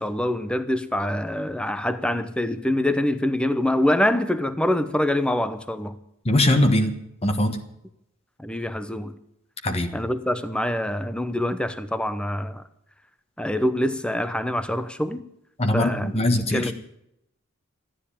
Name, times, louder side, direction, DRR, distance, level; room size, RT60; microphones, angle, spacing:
voice 1, 0.0-6.0 8.4-9.1 9.9-12.6 13.4-15.2 15.7-16.7, left 1 dB, 5° left, 0.9 m, -25 dB
voice 2, 6.2-6.9 7.2-7.6 9.6-9.9 15.6-16.7, left 1 dB, 25° left, 1.4 m, -21 dB
14.0 x 10.0 x 8.5 m
head